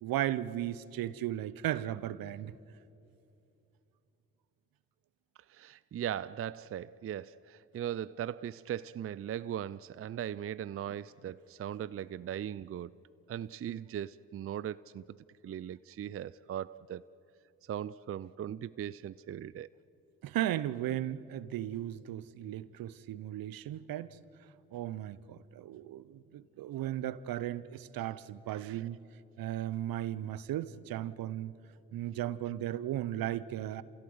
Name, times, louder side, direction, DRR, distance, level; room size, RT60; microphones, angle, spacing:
voice 1, 0.0-2.5 10.9-11.0 20.2-24.2 24.7-29.0 29.4-31.5 31.9-33.8, right 12 dB, 65° right, 0.9 m, -36 dB
voice 2, 5.5-12.9 13.3-15.0 15.4-17.0 17.7-19.7 28.5-28.8, right 10 dB, 40° right, 0.5 m, -39 dB
28.0 x 16.0 x 7.9 m
hypercardioid pair, 45°, 37 cm